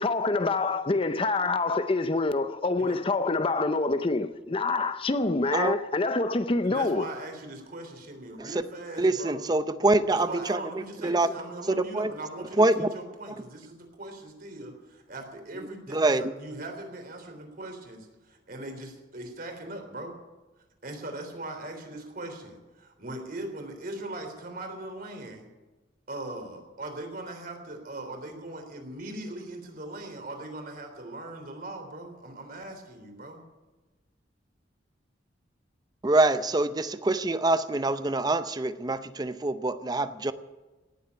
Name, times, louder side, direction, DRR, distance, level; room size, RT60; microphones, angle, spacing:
voice 1, 0.0-7.1, left 3 dB, 30° left, 0.6 m, -26 dB
voice 2, 6.6-9.4 10.1-20.2 20.8-25.5 26.1-33.4, right 1 dB, 50° right, 3.5 m, -40 dB
voice 3, 9.0-10.6 11.0-11.3 11.7-12.1 12.6-12.9 15.9-16.3 36.0-40.3, right 2 dB, 20° right, 0.6 m, -25 dB
18.0 x 8.0 x 9.7 m
head